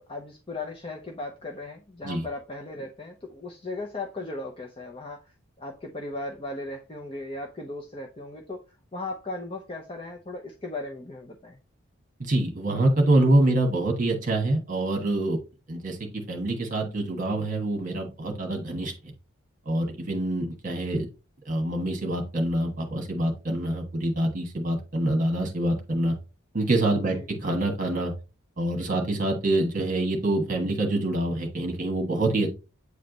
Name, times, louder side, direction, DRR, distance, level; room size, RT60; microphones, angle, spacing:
voice 1, 0.1-8.6 8.9-11.6 27.1-27.3, left 2 dB, 25° left, 1 dB, 0.7 m, -37 dB
voice 2, 12.2-15.4 15.7-18.9 19.6-21.1 21.4-26.2 26.5-27.2 27.4-28.1 28.6-32.5, right 1 dB, 40° right, 2 dB, 1.3 m, -25 dB
8.4 x 3.3 x 3.9 m, 0.31 s
head